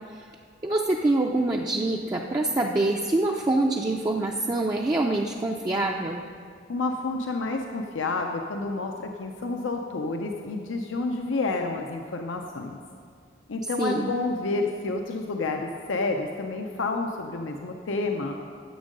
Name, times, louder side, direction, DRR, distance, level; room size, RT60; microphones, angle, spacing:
voice 1, 0.6-6.2 13.8-14.1, right 2 dB, 20° right, 1 dB, 0.4 m, -25 dB
voice 2, 6.7-12.8 13.5-18.4, left 3 dB, 85° left, 3 dB, 0.6 m, -29 dB
10.0 x 7.2 x 5.3 m, 2.1 s
head